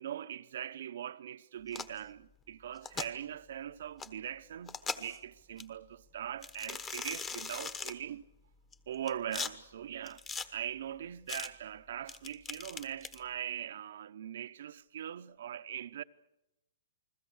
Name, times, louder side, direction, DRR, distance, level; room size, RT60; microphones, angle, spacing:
voice 1, 0.0-8.2 8.9-10.2 10.5-16.0, right 10 dB, 60° right, 0.8 m, -41 dB
sound 1, 1.7-2.0 2.7-3.1 4.0-4.1 4.7-5.2 5.6-5.7 6.4-7.9 8.7-9.5 10.1-10.5 11.3-11.5 12.1-13.2, left 5 dB, 15° left, 1.1 m, -39 dB
29.0 x 21.0 x 6.4 m
hypercardioid pair, 165°, 0 cm